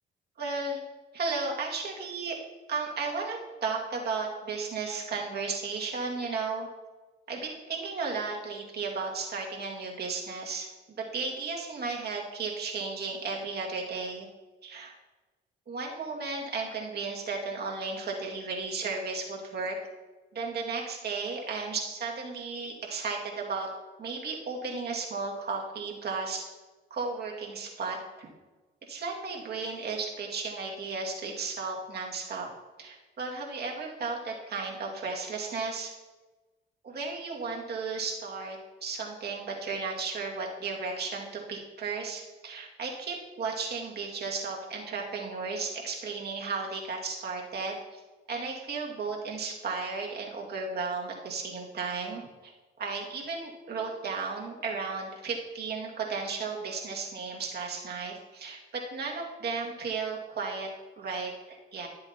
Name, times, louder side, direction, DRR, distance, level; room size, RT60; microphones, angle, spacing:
voice 1, 0.4-0.8 1.1-2.3 2.7-6.7 7.3-14.3 14.6-14.9 15.7-19.8 20.3-23.7 24.0-26.4 26.9-28.3 28.9-32.5 32.8-35.9 36.8-48.0 48.3-52.5 52.8-60.7 61.0-61.9, right 4 dB, 55° right, -1 dB, 2.1 m, -34 dB
12.0 x 7.8 x 2.8 m, 1.2 s
cardioid pair, 90°, 20 cm